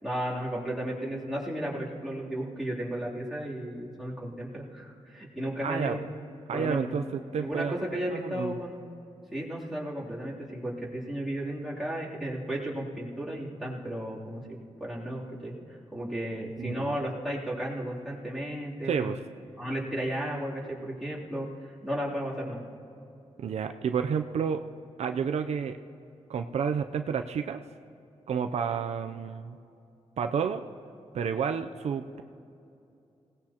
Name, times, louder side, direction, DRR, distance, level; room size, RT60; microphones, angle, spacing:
voice 1, 0.0-6.0 6.5-8.8 9.3-14.4 14.8-19.1 19.6-22.6, right 1 dB, ahead, -7 dB, 3.1 m, -34 dB
voice 2, 5.6-6.0 6.5-7.8 8.1-8.6 16.6-17.0 18.9-19.2 23.4-24.6 25.0-25.8 26.3-27.6 28.3-29.6 30.2-30.6 31.1-32.2, right 7 dB, 75° right, 7 dB, 0.5 m, -30 dB
25.5 x 18.0 x 2.9 m, 2.7 s
wide cardioid pair, 125°, 11 cm